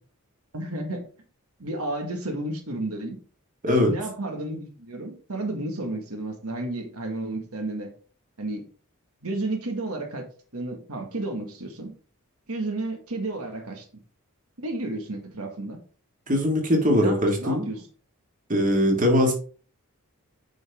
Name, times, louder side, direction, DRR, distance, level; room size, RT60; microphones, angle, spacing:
voice 1, 0.5-1.0 1.6-3.2 3.7-7.9 8.4-8.6 9.2-10.3 10.5-11.9 12.5-13.8 14.6-15.8 16.9-17.9, right 2 dB, 85° right, 4 dB, 1.7 m, -32 dB
voice 2, 16.3-17.7 18.5-19.3, left 1 dB, 35° right, 2 dB, 2.0 m, -21 dB
9.0 x 5.4 x 3.6 m, 0.39 s
head